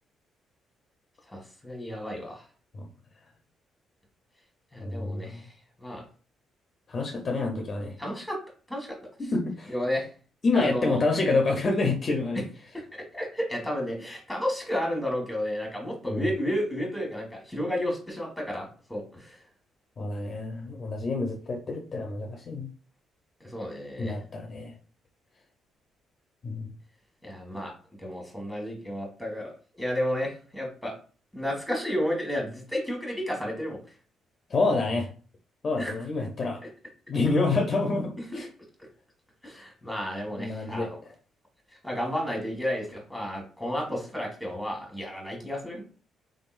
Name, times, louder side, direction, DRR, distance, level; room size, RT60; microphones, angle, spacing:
voice 1, 1.3-2.4 4.7-5.5 5.8-6.0 8.0-8.4 8.7-9.0 9.7-10.1 10.5-11.0 13.1-19.4 23.4-24.1 27.2-27.7 28.0-30.9 31.3-33.8 35.8-35.9 38.3-38.4 39.4-41.0 41.8-45.8, equal, 5° left, 0 dB, 1.6 m, -32 dB
voice 2, 4.8-5.4 6.9-7.9 9.2-9.7 10.4-12.4 16.1-16.3 20.0-22.7 24.0-24.7 26.4-26.7 34.5-35.1 35.6-36.6 37.1-38.5 40.4-40.9, left 3 dB, 40° left, 2 dB, 0.7 m, -27 dB
3.8 x 3.5 x 2.5 m, 0.39 s
cardioid pair, 90°, 0 cm